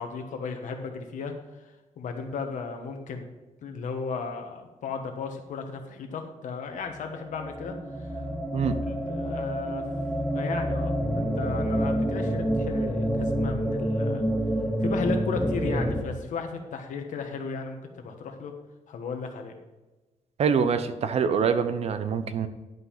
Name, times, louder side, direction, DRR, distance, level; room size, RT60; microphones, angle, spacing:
voice 1, 0.0-3.2 3.6-8.3 8.6-9.9 10.3-14.2 14.8-18.5 18.9-19.5, left 4 dB, 80° left, 4 dB, 1.4 m, -35 dB
sound 1, 6.9-16.0, equal, ahead, 0.8 m, -28 dB
voice 2, 20.4-22.5, right 6 dB, 55° right, 11 dB, 0.7 m, -25 dB
11.0 x 5.4 x 5.8 m, 1.1 s
wide cardioid pair, 165°, 13 cm